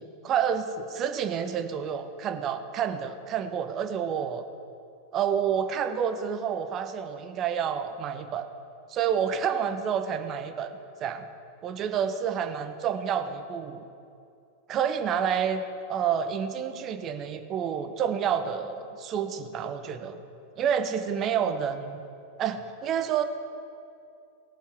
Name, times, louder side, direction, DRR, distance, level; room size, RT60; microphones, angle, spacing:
voice 1, 0.0-4.4 5.1-8.5 8.9-10.7 11.0-11.3 11.6-13.8 14.7-15.6 15.9-20.2 20.6-22.0 22.4-23.2, right 8 dB, 30° right, 8 dB, 0.9 m, -29 dB
18.5 x 6.9 x 4.5 m, 2.5 s
figure-of-eight pair, 90°, 0 cm